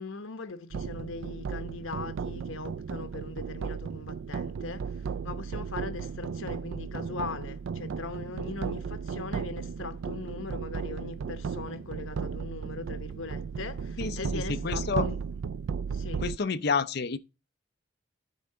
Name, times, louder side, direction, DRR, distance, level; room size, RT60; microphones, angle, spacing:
voice 1, 0.0-15.2 15.9-16.2, left 4 dB, 80° left, 1.0 m, -40 dB
sound 1, 0.7-16.4, right 6 dB, 75° right, 0.4 m, -35 dB
voice 2, 14.0-15.1 16.2-17.2, left 5 dB, 50° left, 0.6 m, -29 dB
9.6 x 3.5 x 6.6 m
head